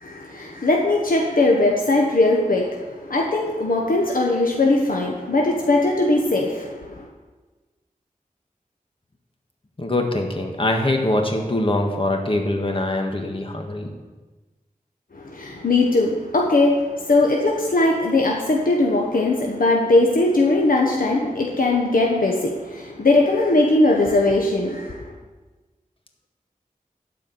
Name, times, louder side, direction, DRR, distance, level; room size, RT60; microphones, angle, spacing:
voice 1, 0.0-7.1 15.1-25.1, left 2 dB, 70° left, -1 dB, 1.2 m, -20 dB
voice 2, 9.8-13.9, left 1 dB, 40° left, 2 dB, 1.7 m, -23 dB
12.5 x 4.9 x 7.8 m, 1.3 s
wide cardioid pair, 60°, 15 cm